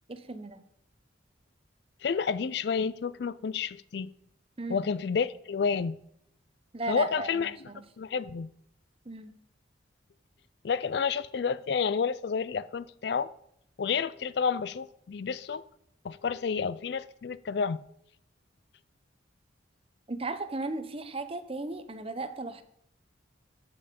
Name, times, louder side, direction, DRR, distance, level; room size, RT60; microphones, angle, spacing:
voice 1, 0.1-0.6 4.6-4.8 6.7-7.8 9.1-9.3 20.1-22.6, right 2 dB, 30° right, 0.7 m, -36 dB
voice 2, 2.0-4.1 4.7-6.0 6.9-7.5 8.0-8.5 10.6-13.3 13.8-15.6 16.0-17.8, left 6 dB, 55° left, 0.4 m, -30 dB
13.5 x 5.5 x 5.2 m
head